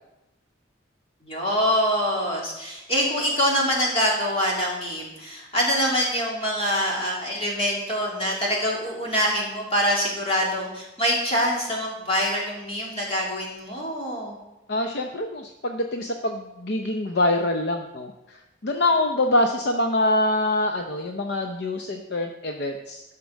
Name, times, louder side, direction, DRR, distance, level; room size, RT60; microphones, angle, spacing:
voice 1, 1.2-14.4, equal, 30° left, -3 dB, 3.0 m, -25 dB
voice 2, 14.7-18.4 18.6-23.0, left 1 dB, 55° left, 4 dB, 0.7 m, -25 dB
12.5 x 6.0 x 6.3 m, 0.98 s
head